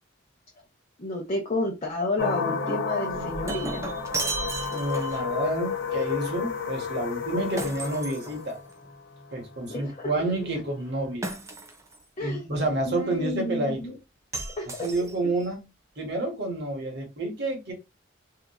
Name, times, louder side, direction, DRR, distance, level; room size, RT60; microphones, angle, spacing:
voice 1, 1.0-4.0 9.7-9.9 12.2-12.5 12.9-14.0 14.6-14.7, left 2 dB, 35° left, 0.7 m, -30 dB
sound 1, 2.2-11.1, left 5 dB, 80° left, 0.6 m, -32 dB
Shatter, 3.2-5.3 7.6-8.9 11.2-12.0 14.3-15.4, right 2 dB, 15° right, 0.4 m, -34 dB
voice 2, 4.7-8.6 9.3-11.3 12.2-13.8 14.8-15.6 16.0-17.7, right 2 dB, 60° right, 1.1 m, -29 dB
2.8 x 2.4 x 2.2 m
head